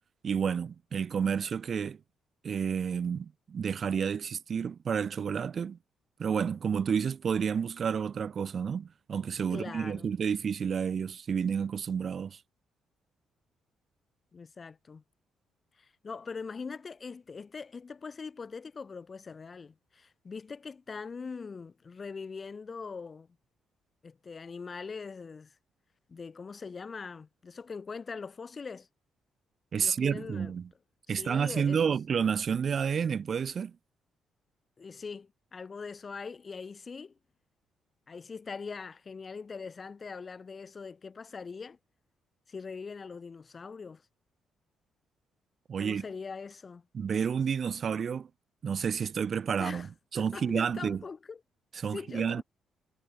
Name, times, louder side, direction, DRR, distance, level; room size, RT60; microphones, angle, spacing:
voice 1, 0.2-2.0 2.4-5.8 6.2-12.4 29.7-30.7 31.1-33.7 45.7-46.0 46.9-48.3 48.6-51.0 51.7-52.4, right 7 dB, 50° right, 0.4 m, -30 dB
voice 2, 9.5-10.1 14.3-15.0 15.8-23.3 24.0-25.5 26.1-28.9 29.8-30.5 31.1-31.8 34.8-37.1 38.1-41.8 42.5-44.0 45.8-46.8 49.6-49.9 50.1-51.4 51.9-52.4, left 5 dB, 35° left, 6.4 m, -42 dB
cardioid pair, 90°, 0 cm